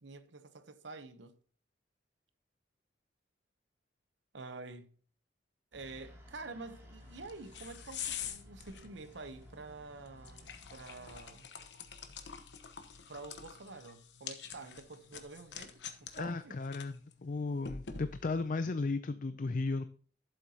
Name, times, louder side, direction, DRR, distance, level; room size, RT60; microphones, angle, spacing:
voice 1, 0.0-1.4 4.3-5.0 5.7-11.5 13.1-16.6, right 3 dB, 90° right, 0.9 m, -48 dB
sound 1, 5.7-11.2, equal, 15° right, 2.6 m, -56 dB
sound 2, 7.0-18.5, left 7 dB, 75° left, 1.0 m, -47 dB
voice 2, 16.1-19.9, left 3 dB, 45° left, 0.4 m, -35 dB
12.0 x 7.6 x 2.9 m
head